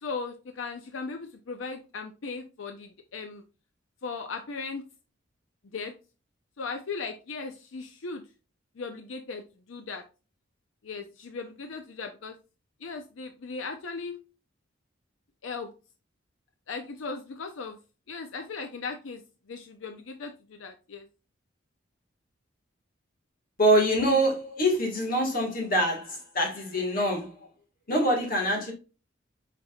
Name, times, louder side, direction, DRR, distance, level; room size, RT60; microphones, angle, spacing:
voice 1, 0.0-3.4 4.0-4.8 5.7-5.9 6.6-8.2 8.8-9.4 9.7-10.0 10.8-12.4 12.8-14.2 15.4-15.7 16.7-17.8 18.1-19.2 19.5-21.1 24.4-24.6, left 4 dB, 75° left, 0.6 m, -37 dB
voice 2, 23.6-27.3 27.9-28.7, equal, 45° left, 1.6 m, -25 dB
5.2 x 4.1 x 2.3 m
head